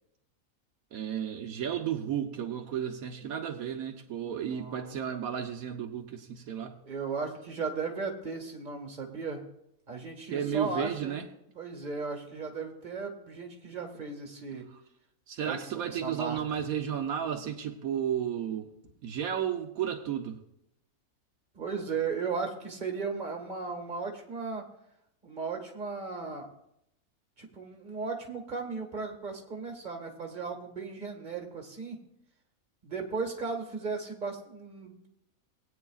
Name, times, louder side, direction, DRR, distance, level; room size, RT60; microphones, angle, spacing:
voice 1, 0.9-6.8 10.3-11.3 15.3-18.7 19.0-20.4, right 9 dB, 80° right, 4 dB, 1.3 m, -33 dB
voice 2, 4.2-5.0 6.8-9.4 9.9-11.2 11.5-14.7 15.4-16.6 21.5-24.6 25.2-26.5 27.4-32.0 32.8-35.1, right 4 dB, 35° right, 2 dB, 1.7 m, -36 dB
19.0 x 9.0 x 2.4 m, 0.78 s
omnidirectional pair, 1.5 m